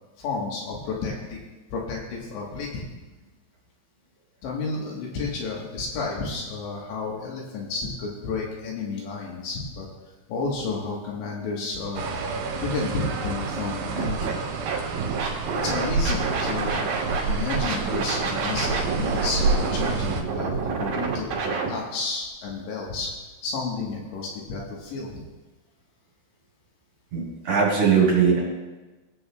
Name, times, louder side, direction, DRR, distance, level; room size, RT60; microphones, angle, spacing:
voice 1, 0.2-1.4 1.7-2.9 4.4-9.9 10.3-12.1 12.6-14.4 15.6-23.1 23.4-25.1, left 4 dB, 75° left, -2 dB, 3.6 m, -31 dB
sound 1, 12.0-20.2, right 3 dB, 80° right, 3.4 m, -29 dB
Scratching (performance technique), 14.0-14.3 14.7-17.2 17.5-21.7, right 5 dB, 65° right, 2.8 m, -28 dB
voice 2, 27.1-28.4, right 6 dB, 45° right, -5 dB, 4.7 m, -20 dB
21.0 x 7.8 x 2.3 m, 1.2 s
omnidirectional pair, 5.3 m